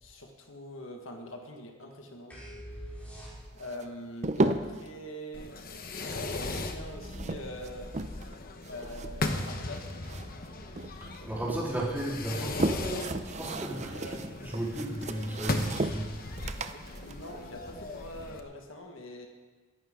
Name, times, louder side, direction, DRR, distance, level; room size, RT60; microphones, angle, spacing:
voice 1, 0.0-2.4 3.5-5.5 6.1-8.3 8.6-9.9 13.9-14.3 17.0-19.3, left 1 dB, 65° left, 3 dB, 1.6 m, -43 dB
sound 1, 2.3-3.8, equal, 5° left, 4.3 m, -44 dB
sound 2, 3.6-4.9 6.0-8.4 8.6-10.5 10.8-11.6 12.2-18.2, right 2 dB, 35° right, 0.6 m, -35 dB
Fireworks, 5.3-18.4, left 2 dB, 45° left, 1.1 m, -38 dB
voice 2, 11.0-14.0 14.4-16.1, right 1 dB, 10° right, -6 dB, 3.8 m, -34 dB
22.5 x 11.5 x 3.8 m, 1.3 s
head